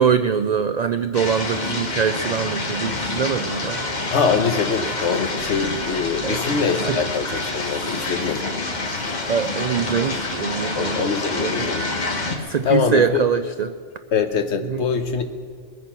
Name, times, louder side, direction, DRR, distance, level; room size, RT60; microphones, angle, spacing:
voice 1, 0.0-3.8 6.2-6.4 6.9-7.0 9.3-11.7 12.5-13.7 14.6-14.8, right 7 dB, 75° right, 11 dB, 0.3 m, -23 dB
sound 1, 1.1-12.4, left 3 dB, 35° left, 1.4 m, -27 dB
sound 2, 2.4-10.4, right 4 dB, 45° right, 1.2 m, -44 dB
voice 2, 4.1-8.5 10.7-11.9 12.6-13.2 14.1-15.2, left 6 dB, 65° left, 8 dB, 1.3 m, -23 dB
21.5 x 9.3 x 6.0 m, 2.1 s
omnidirectional pair, 1.3 m